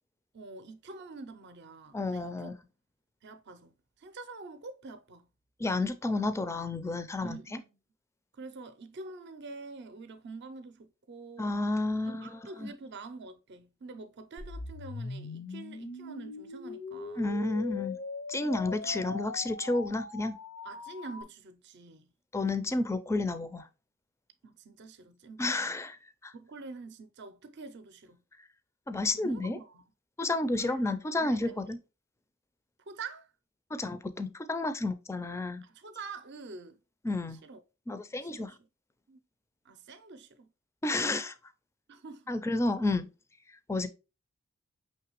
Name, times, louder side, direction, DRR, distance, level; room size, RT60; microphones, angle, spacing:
voice 1, 0.3-2.5 3.2-5.3 7.2-7.7 8.3-11.6 12.1-17.3 18.4-18.6 18.8-19.0 20.6-22.1 24.4-25.8 26.3-28.2 29.1-29.8 30.6-30.8 31.2-31.7 32.9-33.3 35.6-36.8 37.4-37.6 38.2-38.6 39.1-39.2 39.6-40.5 41.9-42.4, right 3 dB, 55° right, 0.5 m, -46 dB
voice 2, 1.9-2.5 5.6-7.6 11.4-12.7 17.2-18.0 18.3-20.4 22.3-23.7 25.4-26.3 28.9-29.6 30.2-31.8 33.7-35.6 37.0-37.4 37.9-38.5 40.8-41.3 42.3-43.1 43.7-43.9, left 2 dB, 15° left, 0.4 m, -31 dB
sound 1, 14.4-21.2, left 3 dB, 70° left, 0.6 m, -41 dB
5.7 x 3.1 x 3.0 m
head